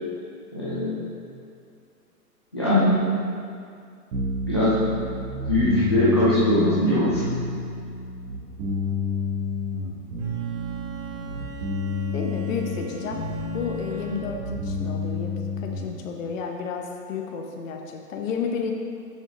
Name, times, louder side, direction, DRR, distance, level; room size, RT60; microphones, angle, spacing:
voice 1, 0.5-1.0 2.5-2.9 4.5-5.1 5.4-7.2 14.1-14.2, left 1 dB, 20° left, -11 dB, 0.3 m, -21 dB
sound 1, 4.1-16.0, left 2 dB, 45° right, 1.5 m, -30 dB
Bowed string instrument, 10.2-14.6, right 1 dB, 25° right, 0.7 m, -42 dB
voice 2, 12.1-13.2 13.5-18.7, left 6 dB, 55° left, 2 dB, 0.9 m, -32 dB
7.4 x 6.5 x 3.9 m, 2.3 s
hypercardioid pair, 140°, 48 cm